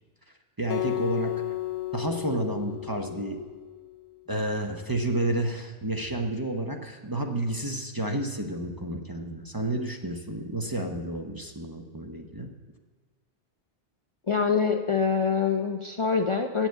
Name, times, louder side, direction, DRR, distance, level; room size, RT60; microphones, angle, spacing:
voice 1, 0.6-1.3 1.9-3.4 4.3-12.5, right 1 dB, 25° right, 2 dB, 0.7 m, -30 dB
Acoustic guitar, 0.7-3.9, left 16 dB, 65° left, 0.8 m, -33 dB
voice 2, 14.3-16.7, left 5 dB, 40° left, 4 dB, 0.5 m, -25 dB
9.1 x 7.3 x 8.2 m, 1.4 s
omnidirectional pair, 1.1 m